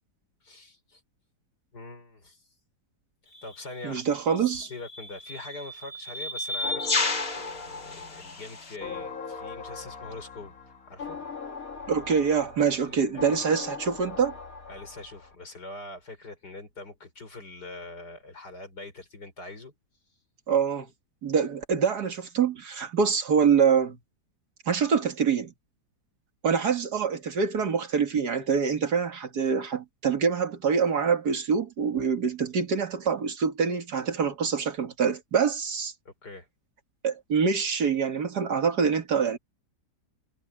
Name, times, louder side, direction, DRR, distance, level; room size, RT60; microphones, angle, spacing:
voice 1, 0.4-1.0 1.7-2.4 3.4-7.0 7.3-11.2 12.8-13.4 14.7-19.8 36.1-36.5, left 2 dB, 70° left, 5.9 m, -43 dB
sound 1, 3.4-3.5 4.6-8.8, left 3 dB, 35° left, 1.9 m, -32 dB
voice 2, 3.8-4.7 11.9-14.4 20.5-20.9 21.2-24.0 24.7-25.5 26.4-35.9 37.0-39.4, right 6 dB, 70° right, 2.3 m, -25 dB
sound 2, 6.6-15.3, left 4 dB, 55° left, 2.4 m, -40 dB
omnidirectional pair, 1.8 m